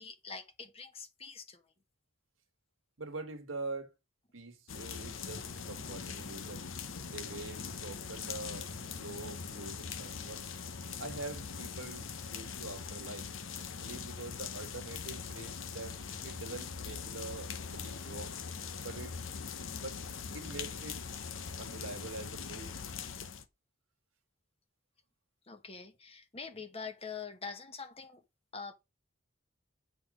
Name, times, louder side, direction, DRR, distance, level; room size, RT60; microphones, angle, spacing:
voice 1, 0.0-1.6 25.5-28.2 28.5-28.7, left 5 dB, 30° left, 1.1 m, -44 dB
voice 2, 3.0-3.9 4.3-6.7 7.1-10.5 11.0-13.3 13.8-18.3 18.8-19.2 19.7-20.0 20.3-21.0 21.6-22.7, right 3 dB, 80° right, 1.5 m, -45 dB
sound 1, 4.7-23.5, left 6 dB, 70° left, 0.8 m, -42 dB
8.2 x 4.2 x 4.9 m
head